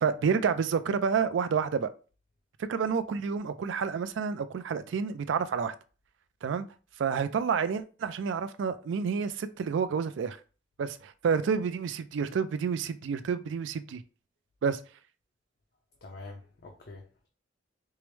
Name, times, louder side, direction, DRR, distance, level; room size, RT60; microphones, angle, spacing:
voice 1, 0.0-1.9 2.7-5.7 6.4-6.7 7.0-10.4 10.8-14.0 14.6-14.8, right 6 dB, 85° right, 0.3 m, -29 dB
voice 2, 16.0-17.3, left 2 dB, 55° left, 0.5 m, -46 dB
4.5 x 2.0 x 3.1 m
head